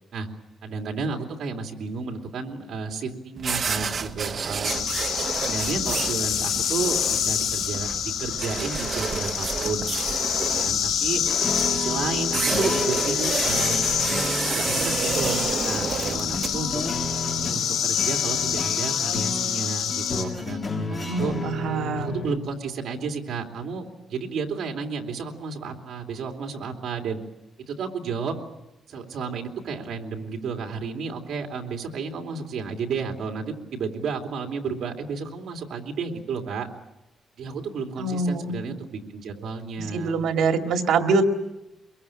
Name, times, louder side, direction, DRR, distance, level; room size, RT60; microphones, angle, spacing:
voice 1, 0.6-4.9 5.4-9.9 10.5-11.2 11.6-13.9 14.4-16.8 17.5-21.4 22.0-27.2 27.7-28.4 28.9-36.7 37.4-40.2, right 5 dB, 55° right, 3 dB, 2.9 m, -32 dB
sound 1, 3.4-17.2, right 5 dB, 35° right, 0.9 m, -30 dB
sound 2, 4.6-20.2, left 8 dB, 85° left, 5.4 m, -27 dB
sound 3, 11.2-22.4, left 2 dB, 25° left, 1.7 m, -32 dB
voice 2, 21.1-22.2 38.0-38.6 39.9-41.2, right 4 dB, 75° right, 5 dB, 2.0 m, -24 dB
23.5 x 22.5 x 8.8 m, 0.95 s
cardioid pair, 180°, 0 cm